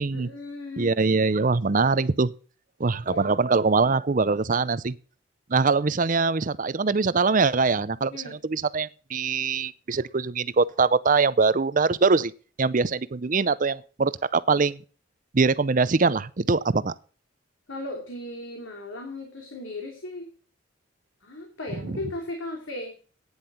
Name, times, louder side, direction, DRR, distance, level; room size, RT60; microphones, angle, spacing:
voice 1, 0.1-0.9 3.1-3.3 8.1-8.4 17.7-20.3 21.2-22.9, left 2 dB, 70° left, 2.9 m, -36 dB
voice 2, 0.8-2.3 2.8-5.0 5.5-12.3 12.6-14.8 15.3-16.9 21.9-22.0, right 4 dB, 40° right, 0.6 m, -23 dB
11.5 x 9.7 x 4.3 m
head